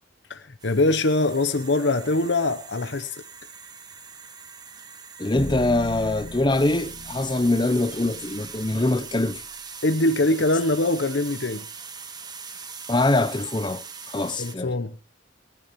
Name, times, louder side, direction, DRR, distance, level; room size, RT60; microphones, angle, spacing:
voice 1, 0.3-3.1 9.8-11.7 14.4-15.1, left 2 dB, 70° left, 0.9 m, -23 dB
sound 1, 0.6-14.6, right 5 dB, 20° right, 1.4 m, -41 dB
voice 2, 5.2-9.4 12.9-14.7, left 2 dB, 25° left, 0.8 m, -23 dB
sound 2, 5.3-9.6, left 1 dB, 50° left, 2.0 m, -39 dB
29.5 x 10.5 x 3.1 m
head